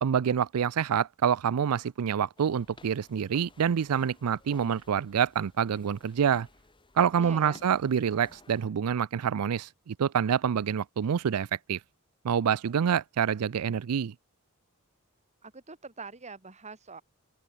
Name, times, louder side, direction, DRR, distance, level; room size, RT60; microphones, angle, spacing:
voice 1, 0.0-6.5 7.0-11.8 12.2-14.1, right 8 dB, 75° right, 0.4 m, -27 dB
sound 1, 2.4-8.7, left 2 dB, 20° left, 2.2 m, -57 dB
voice 2, 7.2-7.6 15.4-17.0, right 4 dB, 30° right, 2.2 m, -44 dB
open air
head